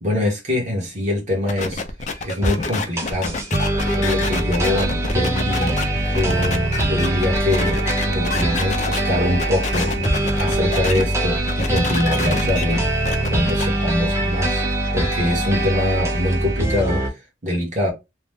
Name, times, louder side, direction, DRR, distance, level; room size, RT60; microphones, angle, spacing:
voice 1, 0.0-1.8 2.2-3.4 3.9-7.8 8.1-9.9 10.4-12.8 13.2-14.6 14.9-17.9, left 1 dB, 40° right, 1.2 m, -24 dB
sound 1, 1.5-9.0 9.4-11.0 11.3-13.7, left 4 dB, 40° left, 0.5 m, -28 dB
sound 2, 2.0-15.7, right 6 dB, 75° right, 1.3 m, -35 dB
sound 3, 2.4-2.5 3.0-17.1, right 1 dB, 15° right, 0.7 m, -23 dB
2.9 x 2.1 x 3.4 m
head